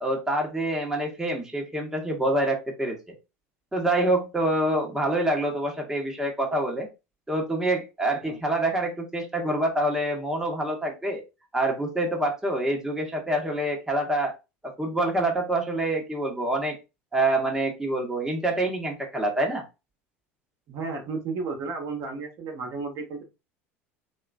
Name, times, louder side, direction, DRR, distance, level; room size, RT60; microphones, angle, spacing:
voice 1, 0.0-3.0 3.7-6.9 7.3-11.2 11.5-14.3 14.6-16.8 17.1-19.6, right 1 dB, 5° right, 1 dB, 1.0 m, -26 dB
voice 2, 20.7-23.2, right 4 dB, 55° right, 2 dB, 0.9 m, -33 dB
2.9 x 2.4 x 2.3 m, 0.26 s
hypercardioid pair, 80°, 7 cm